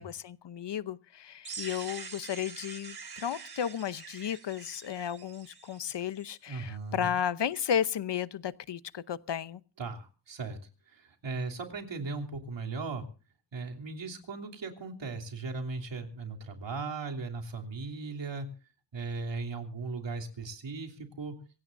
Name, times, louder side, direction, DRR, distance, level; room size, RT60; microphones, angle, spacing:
voice 1, 0.0-9.6, left 9 dB, 70° left, 0.9 m, -33 dB
sound 1, 1.4-6.3, right 5 dB, 55° right, 3.2 m, -45 dB
voice 2, 6.5-7.1 9.8-10.6 10.9-13.0 13.5-18.5 18.9-21.3, right 3 dB, 75° right, 3.2 m, -37 dB
26.0 x 17.0 x 2.6 m
wide cardioid pair, 90°, 44 cm